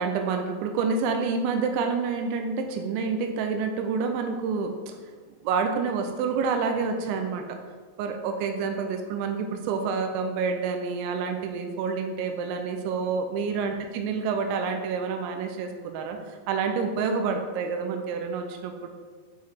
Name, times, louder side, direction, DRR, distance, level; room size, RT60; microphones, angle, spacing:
voice 1, 0.0-5.0 5.4-7.6 8.0-18.9, right 5 dB, 90° right, 5 dB, 2.7 m, -28 dB
7.9 x 5.7 x 4.4 m, 1.5 s
omnidirectional pair, 5.9 m